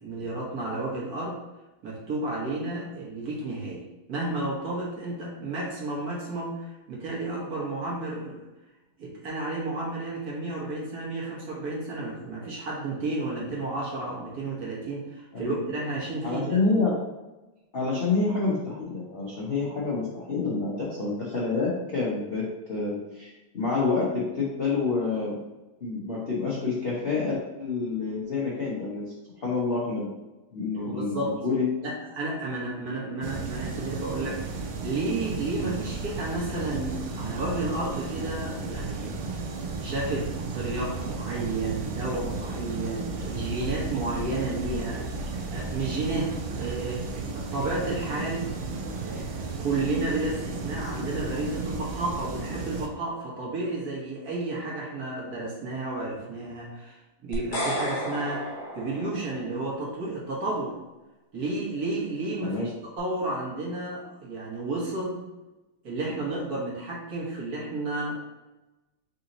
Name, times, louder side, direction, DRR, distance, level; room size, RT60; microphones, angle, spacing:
voice 1, 0.0-1.4 1.8-8.4 9.0-16.6 30.7-31.3 31.8-34.4 34.8-39.1 39.8-48.5 49.0-60.8 61.3-65.2 65.8-68.1, right 2 dB, 50° right, -4 dB, 1.4 m, -32 dB
voice 2, 16.2-16.9 17.7-25.4 25.8-30.1 30.5-31.7 62.4-62.7, left 4 dB, 85° left, -6 dB, 0.5 m, -28 dB
sound 1, 33.2-52.9, right 4 dB, 90° right, 1.6 m, -34 dB
sound 2, 57.3-59.6, equal, 55° left, 1.4 m, -32 dB
4.0 x 2.9 x 3.8 m, 1.0 s
omnidirectional pair, 2.4 m